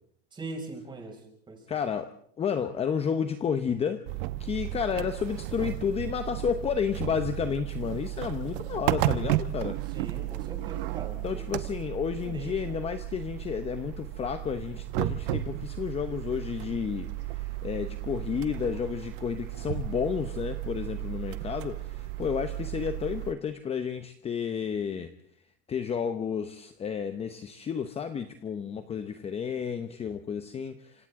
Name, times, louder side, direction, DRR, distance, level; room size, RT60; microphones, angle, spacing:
voice 1, 0.3-1.2 1.5-1.6 9.9-11.6 12.2-12.7, right 3 dB, 15° right, 1 dB, 5.9 m, -41 dB
voice 2, 1.7-4.0 4.4-9.8 11.2-25.1 25.7-31.1, left 7 dB, 20° left, 9 dB, 0.9 m, -31 dB
sound 1, 4.1-23.3, right 15 dB, 70° right, 1.1 m, -34 dB
28.0 x 26.5 x 3.7 m, 0.63 s
supercardioid pair, 150°, 30 cm